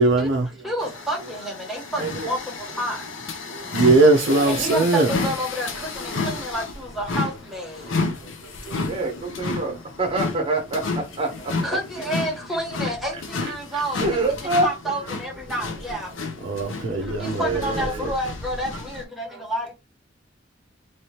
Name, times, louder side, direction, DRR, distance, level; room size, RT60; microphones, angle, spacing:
voice 1, 0.0-0.5 3.7-5.1 16.4-17.4, right 3 dB, 65° right, 0.5 m, -19 dB
voice 2, 0.6-2.4 2.8-3.0 4.4-5.7 6.0-7.8 11.6-16.1 17.2-19.7, right 1 dB, ahead, 1.4 m, -29 dB
sound 1, 0.8-19.0, left 3 dB, 80° left, 0.6 m, -31 dB
voice 3, 2.0-2.3 4.2-4.7 8.9-9.7 10.0-11.5 13.7-15.0 16.8-16.9 17.2-18.1, right 2 dB, 30° right, 1.3 m, -26 dB
3.1 x 3.1 x 2.9 m
head